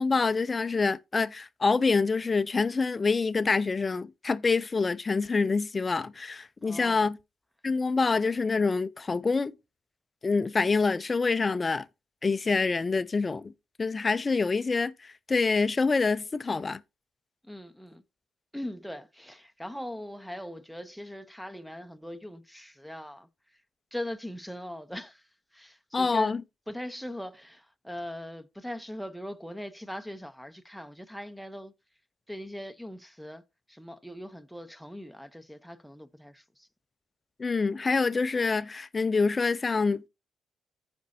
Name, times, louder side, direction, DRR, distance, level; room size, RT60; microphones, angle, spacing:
voice 1, 0.0-7.2 7.6-9.5 10.2-11.9 12.2-13.5 13.8-16.8 25.9-26.4 37.4-40.1, left 4 dB, 30° left, 0.5 m, -26 dB
voice 2, 6.6-7.1 17.4-18.0 18.5-23.3 23.9-26.4 26.7-31.7 32.3-36.7, left 1 dB, ahead, 0.8 m, -40 dB
14.5 x 5.2 x 2.7 m
cardioid pair, 90°, 0 cm